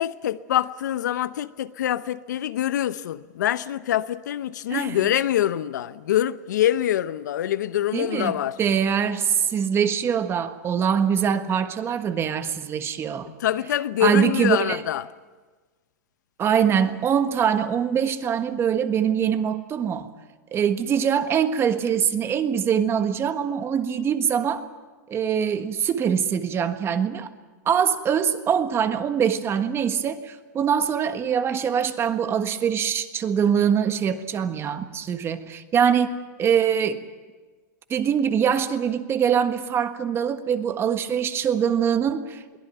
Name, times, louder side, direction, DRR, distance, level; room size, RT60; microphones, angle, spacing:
voice 1, 0.0-8.6 13.4-15.0, left 11 dB, 80° left, 0.8 m, -25 dB
voice 2, 7.9-13.3 14.0-14.8 16.4-20.1 20.5-24.6 25.1-27.3 27.6-37.0 37.9-42.6, right 8 dB, 25° right, 1.5 m, -23 dB
22.5 x 17.5 x 9.3 m
hypercardioid pair, 130°, 9 cm